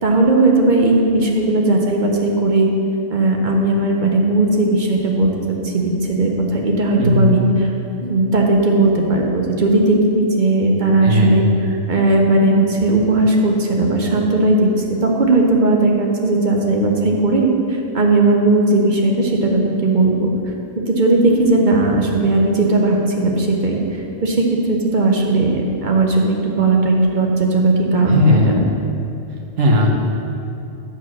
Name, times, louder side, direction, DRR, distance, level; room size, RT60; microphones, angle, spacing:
voice 1, 0.0-2.7 3.1-7.4 8.0-11.5 11.9-20.3 20.8-28.7, right 2 dB, 45° right, 0 dB, 0.8 m, -17 dB
voice 2, 7.0-7.3 11.0-11.4 28.1-28.6 29.6-29.9, left 1 dB, 80° right, 0 dB, 1.4 m, -15 dB
7.7 x 4.5 x 6.1 m, 2.7 s
omnidirectional pair, 1.3 m